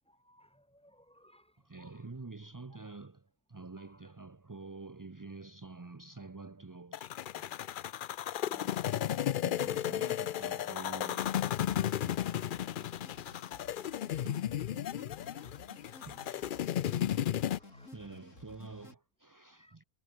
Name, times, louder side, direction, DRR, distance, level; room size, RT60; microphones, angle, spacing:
voice 1, 0.1-2.1 3.8-4.1 8.4-8.7 17.6-18.0 19.5-19.8, equal, 5° left, 4.4 m, -62 dB
voice 2, 1.6-8.2 8.6-8.7 9.1-11.5 14.1-17.2 17.9-19.8, right 3 dB, 20° right, 0.5 m, -49 dB
sound 1, 6.9-17.6, left 11 dB, 85° left, 0.4 m, -34 dB
sound 2, 11.2-19.0, left 2 dB, 60° left, 4.8 m, -54 dB
omnidirectional pair, 1.5 m